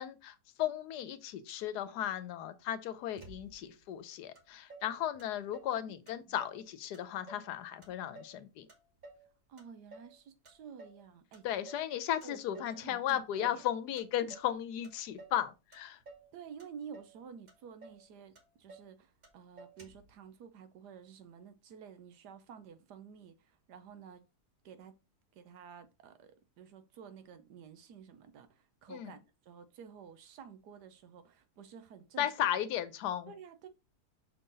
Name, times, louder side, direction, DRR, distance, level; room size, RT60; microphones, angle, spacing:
voice 1, 0.0-8.7 11.4-16.0 28.9-29.1 32.2-33.3, left 11 dB, 85° left, 1.2 m, -35 dB
Motor vehicle (road), 3.2-3.8 4.3-4.4 4.7-5.8 6.1-6.7 6.9-7.5 7.8-9.3 9.6-10.2 10.4-11.0 11.3-11.9 12.2-12.8 13.1-13.7 14.0-14.5 14.8-15.4 15.7-16.3 16.6-17.2 17.5-17.6 17.8-18.1 18.3-18.9 19.2-19.3 19.6-20.1, right 2 dB, 30° right, 1.1 m, -54 dB
voice 2, 9.5-11.5 12.2-13.6 16.3-24.2 24.6-25.0 25.3-32.3 33.3-33.7, right 7 dB, 85° right, 1.4 m, -51 dB
6.3 x 3.8 x 3.9 m
omnidirectional pair, 1.7 m